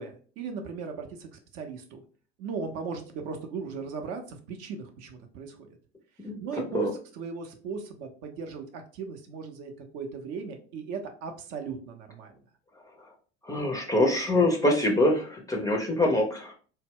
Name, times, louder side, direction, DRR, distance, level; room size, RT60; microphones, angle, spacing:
voice 1, 0.0-2.0 2.4-5.7 6.4-12.4, right 5 dB, 50° right, 4 dB, 0.6 m, -37 dB
voice 2, 6.2-6.9 13.4-16.5, left 1 dB, 10° left, 1 dB, 0.5 m, -25 dB
2.1 x 2.0 x 3.5 m, 0.41 s
figure-of-eight pair, 70°, 34 cm